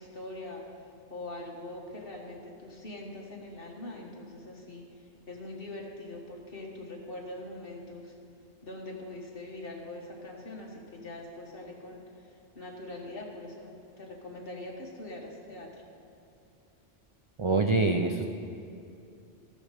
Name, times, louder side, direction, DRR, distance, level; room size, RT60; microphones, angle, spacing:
voice 1, 0.0-8.2 8.6-15.8, left 2 dB, 50° left, -1 dB, 1.8 m, -43 dB
voice 2, 17.4-18.3, right 3 dB, 50° right, 4 dB, 0.3 m, -25 dB
14.0 x 6.3 x 6.5 m, 2.6 s
omnidirectional pair, 1.2 m